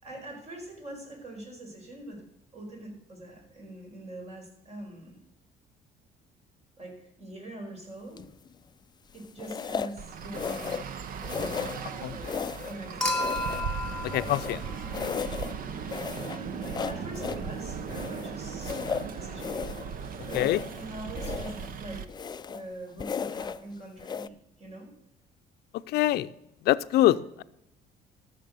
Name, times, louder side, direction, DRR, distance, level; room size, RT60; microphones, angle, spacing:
voice 1, 0.0-2.2 2.5-5.2 6.8-8.2 9.1-10.8 11.4-12.4 12.6-13.2 16.3-19.6 20.3-22.2 22.5-24.9 27.0-27.2, right 1 dB, 40° right, 1 dB, 5.3 m, -43 dB
sound 1, 8.1-8.5 9.4-10.0 10.3-10.9 11.2-11.9 12.2-12.8 13.1-14.6 14.9-15.6 15.9-17.5 17.9-19.9 20.2-20.9 21.2-21.7 22.1-22.7 23.0-23.6 24.0-24.3, left 6 dB, 25° left, 0.4 m, -35 dB
Traffic noise roadway noise, 10.0-22.1, right 6 dB, 55° right, 1.0 m, -38 dB
Human group actions / Chink clink / Liquid, 13.0-15.4 16.9-17.0, left 1 dB, 5° left, 2.6 m, -33 dB
voice 2, 14.0-14.6 20.3-20.6 25.7-26.3 26.6-27.4, left 14 dB, 75° left, 14 dB, 0.6 m, -24 dB
13.5 x 7.0 x 6.8 m, 0.83 s
cardioid pair, 110°, 17 cm